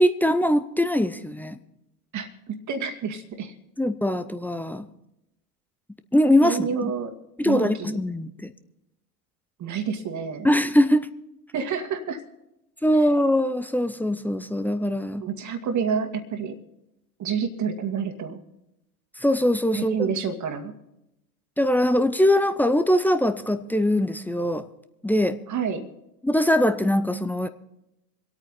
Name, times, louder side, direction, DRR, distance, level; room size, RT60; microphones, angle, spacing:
voice 1, 0.0-1.6 3.8-4.9 6.1-6.9 7.4-8.5 10.4-11.1 12.8-15.2 19.2-20.1 21.6-24.6 25.0-25.4 26.2-27.5, left 1 dB, 5° left, 10 dB, 0.5 m, -22 dB
voice 2, 2.1-3.5 6.4-7.1 7.4-8.0 9.6-10.5 11.5-12.2 15.2-16.6 17.2-18.4 19.7-20.7 25.5-25.9, right 6 dB, 35° right, 7 dB, 2.1 m, -28 dB
26.0 x 8.9 x 4.1 m, 0.89 s
hypercardioid pair, 90°, 47 cm